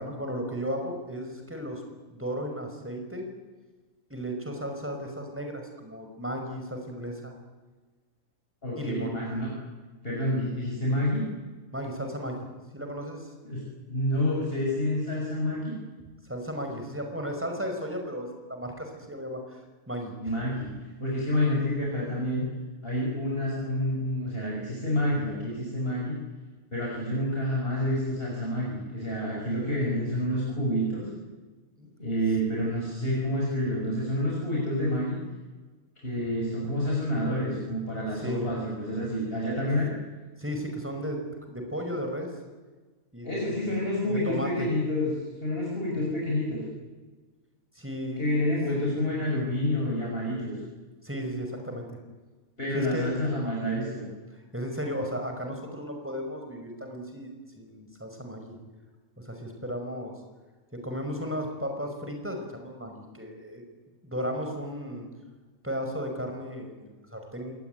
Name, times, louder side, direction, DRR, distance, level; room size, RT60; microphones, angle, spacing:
voice 1, 0.0-1.8 2.1-3.2 4.1-7.3 8.8-9.1 11.7-12.5 12.7-13.3 16.2-19.6 19.9-20.1 31.8-31.9 38.2-38.5 40.4-41.2 41.5-42.3 43.1-43.6 44.1-44.7 46.0-46.1 47.8-48.2 51.0-52.0 52.7-53.5 54.5-58.6 59.2-60.1 60.7-63.6 64.0-65.1 65.6-67.5, equal, 10° right, 3 dB, 5.6 m, -35 dB
voice 2, 8.6-9.5 10.0-11.2 13.4-15.7 20.2-20.7 21.0-22.4 22.8-26.1 26.7-31.1 32.0-35.2 36.0-39.9 43.2-45.1 45.4-46.6 48.2-50.5 52.6-54.1, left 1 dB, 40° left, -3 dB, 6.4 m, -28 dB
26.5 x 19.5 x 9.4 m, 1.3 s
omnidirectional pair, 1.5 m